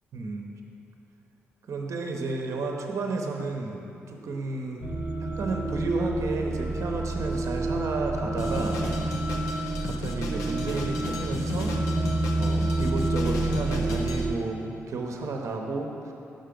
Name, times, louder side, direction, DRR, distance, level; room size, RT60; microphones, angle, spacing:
voice 1, 0.1-0.5 1.7-3.8 4.1-9.1 9.8-11.8 12.3-16.1, right 3 dB, 65° right, 1 dB, 0.8 m, -32 dB
sound 1, 4.8-14.3, right 2 dB, 35° right, 0.6 m, -28 dB
Drum kit, 8.4-14.3, left 3 dB, 80° left, 0.6 m, -37 dB
6.6 x 5.5 x 5.2 m, 2.8 s
hypercardioid pair, 45°, 6 cm